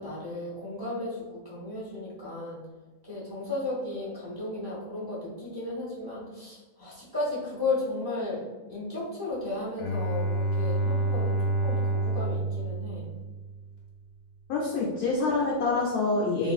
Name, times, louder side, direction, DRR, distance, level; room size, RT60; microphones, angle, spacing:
voice 1, 0.0-2.6 3.1-8.4 8.7-13.1, left 2 dB, 25° right, -10 dB, 0.5 m, -34 dB
Bowed string instrument, 9.8-13.7, right 2 dB, 90° left, 1.4 m, -28 dB
voice 2, 14.5-16.5, left 3 dB, 75° left, -3 dB, 0.9 m, -26 dB
3.2 x 2.5 x 2.4 m, 1.2 s
omnidirectional pair, 2.1 m